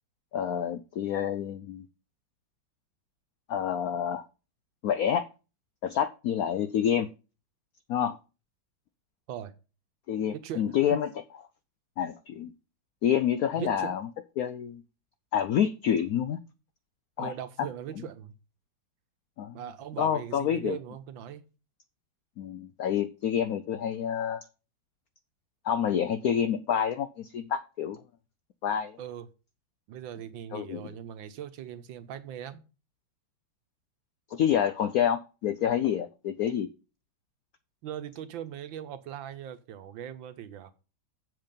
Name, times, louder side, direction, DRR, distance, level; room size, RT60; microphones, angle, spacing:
voice 1, 0.3-1.9 3.5-4.2 4.8-5.3 5.8-7.1 7.9-8.2 10.1-11.1 12.0-12.5 13.0-14.0 14.4-14.8 15.3-16.4 17.2-17.3 19.4-19.6 20.0-20.8 22.4-24.4 25.6-28.0 28.6-29.0 30.5-30.9 34.3-36.7, left 9 dB, 75° left, 0.8 m, -28 dB
voice 2, 10.3-11.0 13.6-14.0 17.2-18.3 19.5-21.4 29.0-29.3 29.9-32.6 37.8-40.7, right 10 dB, 75° right, 1.6 m, -40 dB
7.7 x 7.2 x 5.2 m
omnidirectional pair, 2.2 m